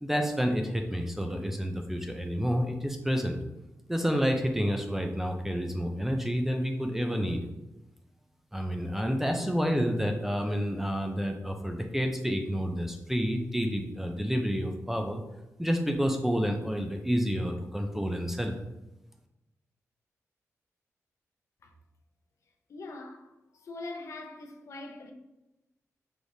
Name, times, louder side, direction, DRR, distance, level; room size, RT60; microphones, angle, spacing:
voice 1, 0.0-3.4 3.9-7.4 8.5-15.2 15.6-18.5, equal, 5° right, 0.4 m, -29 dB
voice 2, 22.7-25.1, left 2 dB, 65° left, 0.6 m, -42 dB
4.9 x 3.1 x 2.7 m
wide cardioid pair, 150°, 6 cm